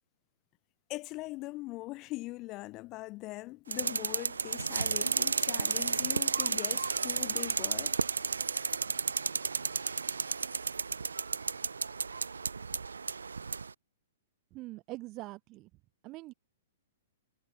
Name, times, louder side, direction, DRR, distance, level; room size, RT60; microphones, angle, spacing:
voice 1, 0.9-8.0, left 20 dB, 30° left, 5.9 m, -41 dB
sound 1, 3.7-13.7, right 5 dB, 75° right, 2.8 m, -32 dB
voice 2, 14.5-15.7 16.0-16.3, right 20 dB, 30° right, 4.5 m, -43 dB
figure-of-eight pair, 110°, 0 cm